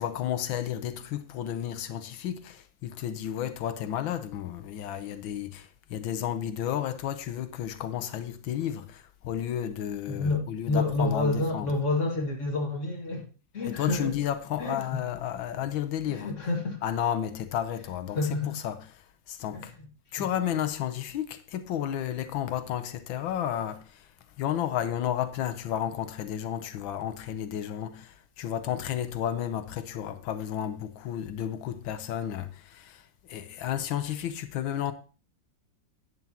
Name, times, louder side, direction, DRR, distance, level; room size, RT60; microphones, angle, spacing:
voice 1, 0.0-11.7 13.6-16.3 16.8-18.2 18.6-18.8 19.3-19.7 20.1-24.1 24.4-33.0 33.3-34.9, left 10 dB, 90° left, 1.6 m, -32 dB
voice 2, 10.1-13.3 13.5-14.1 14.6-15.0 16.1-16.8 18.1-18.5 19.5-19.7 20.2-20.3, left 2 dB, 40° left, 2.1 m, -29 dB
11.0 x 10.5 x 2.9 m
omnidirectional pair, 2.1 m